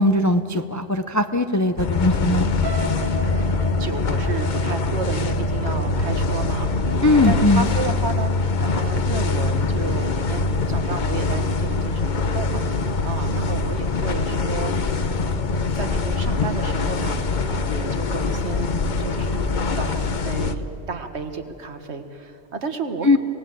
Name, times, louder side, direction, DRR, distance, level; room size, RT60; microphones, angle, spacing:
voice 1, 0.0-2.5 7.0-7.7 23.0-23.2, left 2 dB, 25° left, 9 dB, 0.4 m, -19 dB
sound 1, 1.8-20.5, left 3 dB, 45° left, 1.0 m, -23 dB
sound 2, 2.6-6.6 7.1-7.4 7.7-7.8, right 3 dB, 50° right, 1.2 m, -37 dB
voice 2, 3.3-6.7 6.9-14.7 15.1-17.2 17.5-23.2, right 4 dB, 70° right, 8 dB, 1.7 m, -32 dB
25.5 x 18.0 x 7.6 m, 2.6 s
omnidirectional pair, 1.2 m